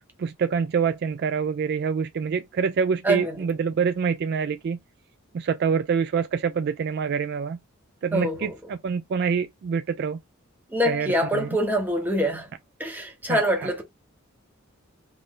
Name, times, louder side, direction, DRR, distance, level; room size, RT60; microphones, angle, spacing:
voice 1, 0.2-4.8 5.3-7.6 8.0-10.2 10.9-11.1 11.3-11.5 13.3-13.7, right 6 dB, 50° right, 0.3 m, -26 dB
voice 2, 3.0-3.4 8.1-8.5 10.7-12.5 12.8-13.8, equal, 10° right, 0.9 m, -25 dB
3.1 x 2.6 x 3.6 m
head